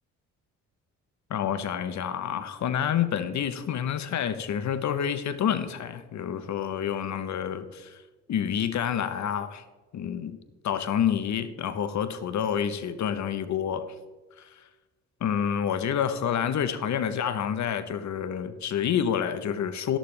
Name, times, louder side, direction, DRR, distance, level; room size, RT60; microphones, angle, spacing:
voice 1, 1.3-8.0 8.3-9.6 9.9-10.4 10.6-13.9 14.4-14.6 15.2-20.0, left 8 dB, 50° left, 12 dB, 1.0 m, -28 dB
11.5 x 11.5 x 3.4 m, 1.2 s
hypercardioid pair, 55°, 35 cm